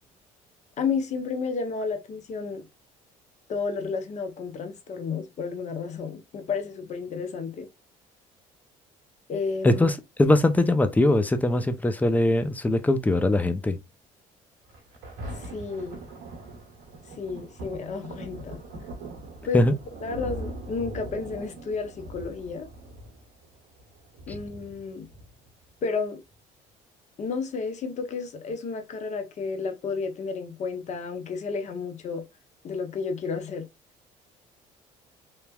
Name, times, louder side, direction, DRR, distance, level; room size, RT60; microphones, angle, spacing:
voice 1, 0.8-2.6 3.5-7.7 9.3-9.9 15.4-16.0 17.2-18.6 19.4-19.7 20.0-22.7 24.3-25.1 25.8-26.2 27.2-32.2 32.6-33.7, left 5 dB, 45° left, 0.7 m, -31 dB
voice 2, 9.6-9.9 10.2-13.8 19.5-19.7, left 1 dB, 10° left, 0.4 m, -21 dB
Thunder, 14.7-25.7 26.3-26.4, right 1 dB, 85° right, 1.1 m, -41 dB
3.1 x 2.1 x 2.3 m
supercardioid pair, 80°, 17 cm